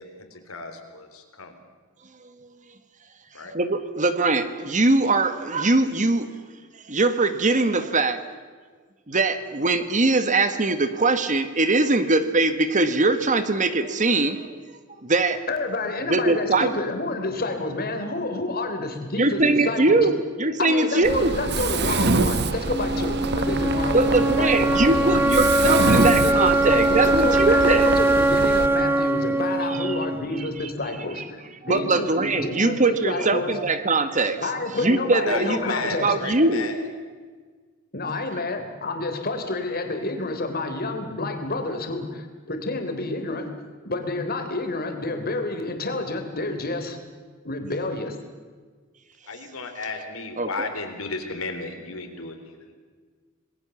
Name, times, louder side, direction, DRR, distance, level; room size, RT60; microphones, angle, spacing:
voice 1, 0.0-1.6 3.3-3.5 35.2-36.8 49.3-52.7, left 3 dB, 80° left, 5 dB, 3.8 m, -34 dB
voice 2, 3.5-6.3 6.9-8.2 9.1-14.4 15.0-15.4 16.1-16.7 19.2-21.4 23.9-27.9 29.8-30.0 31.6-34.4 34.8-36.7 50.4-50.7, right 2 dB, 35° right, 10 dB, 1.4 m, -21 dB
voice 3, 15.5-20.1 20.6-33.6 34.4-36.1 37.9-43.5 43.8-47.0 47.4-48.2, left 2 dB, 45° left, 5 dB, 3.4 m, -29 dB
Mechanisms, 21.0-28.7, right 3 dB, 50° right, 1.0 m, -26 dB
sound 1, 22.7-30.7, right 1 dB, 10° right, 0.7 m, -22 dB
27.5 x 20.5 x 7.1 m, 1.5 s
head